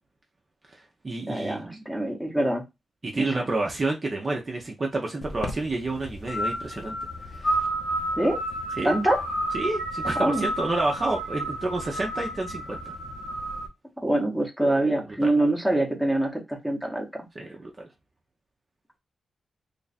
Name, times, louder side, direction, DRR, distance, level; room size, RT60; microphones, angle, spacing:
voice 1, 0.7-1.9 3.0-7.0 7.3-7.7 8.8-8.9 9.5-13.0 15.2-15.4 17.3-17.9, right 2 dB, 25° right, 0 dB, 0.6 m, -29 dB
voice 2, 1.3-2.6 3.2-3.4 8.2-8.4 8.8-9.2 10.2-10.5 14.0-17.3, right 1 dB, ahead, 1 dB, 0.9 m, -25 dB
sound 1, 5.2-13.7, right 1 dB, 60° left, 0.8 m, -31 dB
3.2 x 2.4 x 4.0 m, 0.22 s
wide cardioid pair, 170°, 0 cm